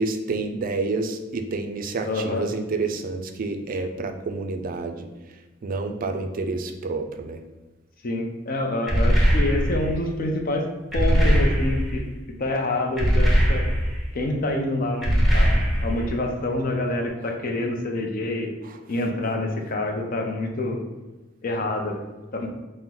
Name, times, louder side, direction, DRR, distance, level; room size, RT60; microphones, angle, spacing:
voice 1, 0.0-5.1 5.6-7.4, right 3 dB, 45° right, 6 dB, 0.4 m, -28 dB
voice 2, 2.0-2.5 8.0-10.7 10.9-12.0 12.3-13.7 14.1-18.5 18.9-20.8 21.4-22.0 22.3-22.5, left 2 dB, 45° left, 3 dB, 0.5 m, -27 dB
sound 1, 8.9-10.0 10.9-12.0 13.0-14.1 15.0-16.1, equal, ahead, 0.7 m, -20 dB
4.3 x 2.1 x 3.7 m, 1.2 s
head